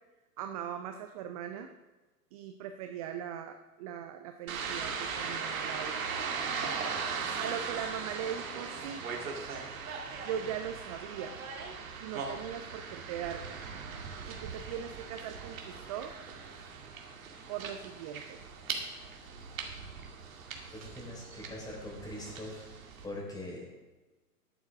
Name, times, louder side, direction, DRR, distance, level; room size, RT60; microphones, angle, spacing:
voice 1, 0.4-1.7 2.3-6.1 7.4-9.0 10.2-11.4 12.0-13.6 14.3-16.1 17.5-18.4 20.6-20.7, right 9 dB, 25° right, 7 dB, 0.5 m, -40 dB
sound 1, 4.5-23.1, right 5 dB, 60° right, 2.3 m, -39 dB
voice 2, 20.7-22.7 23.0-23.7, left 1 dB, 10° left, -2 dB, 3.8 m, -42 dB
13.0 x 11.0 x 3.6 m, 1.2 s
figure-of-eight pair, 110°, 47 cm